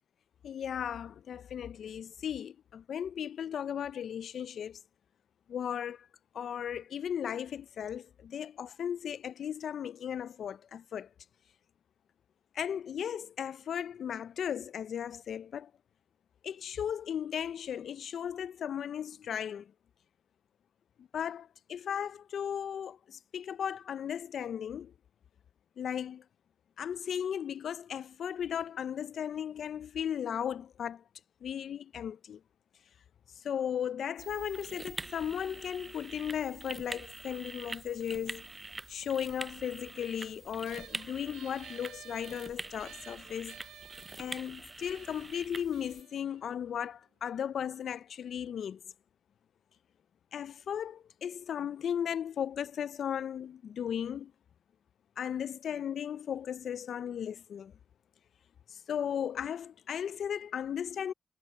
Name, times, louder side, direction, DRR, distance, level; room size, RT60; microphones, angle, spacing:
voice 1, 0.4-4.8 5.5-6.1 6.3-11.1 12.6-15.7 16.4-19.7 21.0-24.9 25.8-26.2 26.8-31.0 31.4-32.4 33.4-38.4 38.9-43.6 44.2-48.8 50.3-54.3 55.2-57.7 58.9-61.1, left 8 dB, 75° left, 0.4 m, -36 dB
sound 1, 34.2-46.0, right 2 dB, 30° right, 0.5 m, -45 dB
sound 2, 40.6-47.4, right 11 dB, 90° right, 3.1 m, -55 dB
supercardioid pair, 50°, 0 cm